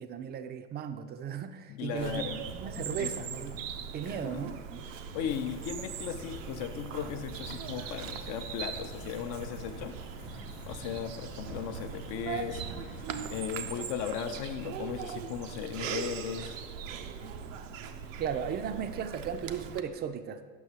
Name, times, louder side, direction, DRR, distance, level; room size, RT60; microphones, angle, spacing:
voice 1, 0.0-2.2 2.5-3.6 3.9-4.6 18.2-20.4, right 8 dB, 30° right, 10 dB, 0.4 m, -36 dB
voice 2, 1.7-2.4 2.8-3.4 4.0-4.5 5.1-9.9 10.7-13.0 13.3-16.6, left 8 dB, 55° left, 8 dB, 0.6 m, -37 dB
Bird vocalization bird call bird song, 2.0-19.8, right 7 dB, 85° right, 0.5 m, -40 dB
sound 1, 5.3-13.4, left 2 dB, 75° left, 1.1 m, -49 dB
6.3 x 5.9 x 2.8 m, 1.5 s
hypercardioid pair, 75°, 37 cm